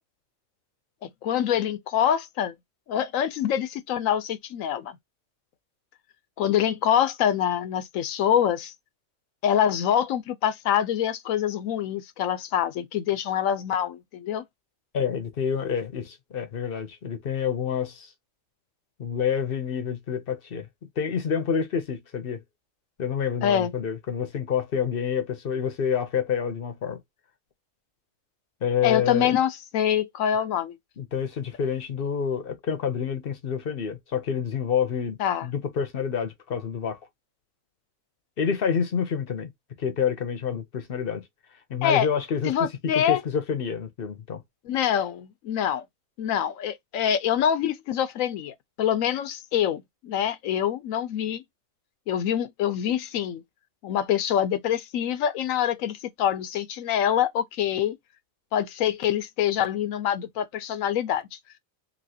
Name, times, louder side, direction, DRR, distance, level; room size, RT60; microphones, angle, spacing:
voice 1, 1.2-2.5 2.9-5.0 6.4-8.7 9.4-14.4 23.4-23.7 28.8-30.8 35.2-35.5 41.8-42.1 42.4-43.2 44.7-45.8 46.2-51.4 52.1-53.4 53.8-58.0 58.5-61.2, left 9 dB, 80° left, 1.0 m, -25 dB
voice 2, 14.9-18.1 19.0-20.7 21.0-22.4 23.0-27.0 28.6-29.4 31.0-37.0 38.4-39.5 39.8-41.2 41.7-42.5 42.8-44.4, left 7 dB, 50° left, 0.8 m, -28 dB
3.1 x 2.8 x 2.7 m
omnidirectional pair, 1.4 m